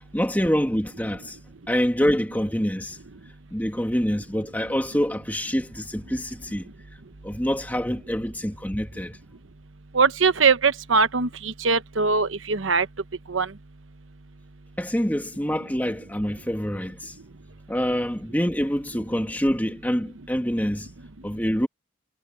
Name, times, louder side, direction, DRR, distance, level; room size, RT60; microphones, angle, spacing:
voice 1, 0.1-1.4 1.7-3.0 3.5-6.7 7.2-9.2 14.8-17.1 17.7-20.9 21.2-21.7, equal, 10° left, 2.3 m, -26 dB
voice 2, 9.9-12.9 13.3-13.5, right 5 dB, 85° right, 1.1 m, -21 dB
head